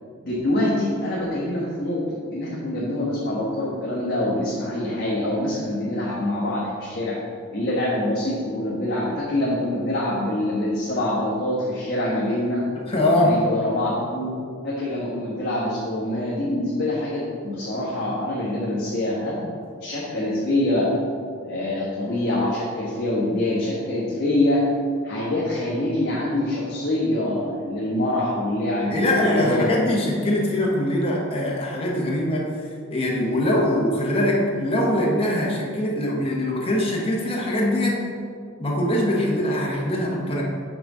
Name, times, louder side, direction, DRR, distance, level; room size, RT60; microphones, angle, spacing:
voice 1, 0.2-2.0 2.3-7.2 7.5-12.7 13.2-14.4 14.6-19.5 19.8-20.9 21.4-24.7 25.0-29.8, left 1 dB, 45° left, -9 dB, 1.3 m, -25 dB
voice 2, 12.9-13.5 28.8-32.6 32.9-38.0 38.6-40.4, left 1 dB, 25° left, -3 dB, 1.1 m, -22 dB
6.0 x 4.0 x 6.1 m, 2.2 s
head